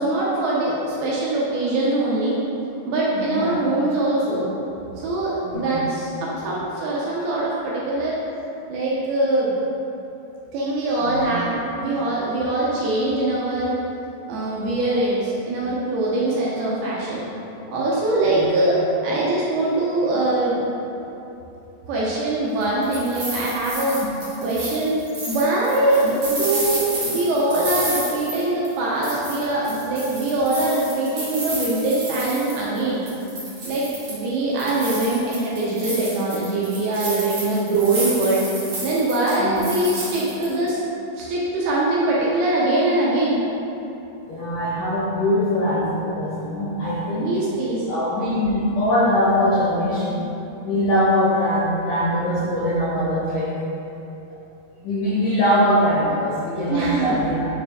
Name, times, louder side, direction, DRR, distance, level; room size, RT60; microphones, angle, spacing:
voice 1, 0.0-2.3 2.9-4.5 5.0-8.2 8.7-9.5 10.5-13.8 14.3-17.2 17.7-20.7 21.9-24.0 24.4-24.9 25.3-33.0 33.7-38.4 38.8-40.8 41.2-43.4 47.2-47.8 56.7-57.2, right 2 dB, 75° right, -6 dB, 2.4 m, -22 dB
voice 2, 3.1-3.6 5.4-5.8 11.0-11.3 18.2-18.5 26.0-26.2 39.4-39.6 44.3-47.3 47.9-50.2 50.6-53.5 54.8-57.5, left 1 dB, 80° left, -8 dB, 1.8 m, -22 dB
sound 1, 22.6-28.8 29.0-32.8 33.1-34.2 34.6-40.7, right 2 dB, 55° right, 2.0 m, -31 dB
6.2 x 4.8 x 3.5 m, 3.0 s
omnidirectional pair, 5.0 m